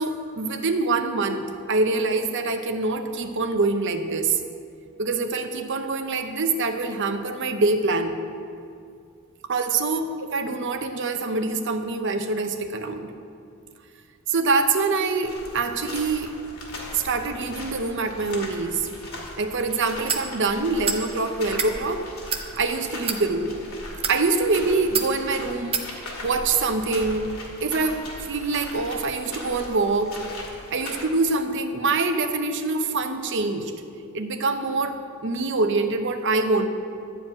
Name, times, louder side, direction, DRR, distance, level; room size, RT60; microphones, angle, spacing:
voice 1, 0.0-4.4 5.0-8.2 9.5-13.1 14.3-16.4 16.9-18.8 19.4-22.0 22.6-23.6 24.1-25.8 26.2-27.3 27.6-30.2 30.7-33.7 34.1-36.7, right 3 dB, 60° right, 7 dB, 0.8 m, -25 dB
sound 1, 15.2-31.0, left 1 dB, 80° left, 2.3 m, -39 dB
sound 2, 20.1-20.3 20.8-21.0 21.4-21.7 22.3-22.5 23.0-23.2 23.9-24.2 24.9-25.1 25.7-25.9, right 6 dB, 25° right, 0.8 m, -26 dB
12.0 x 5.0 x 8.7 m, 2.4 s
head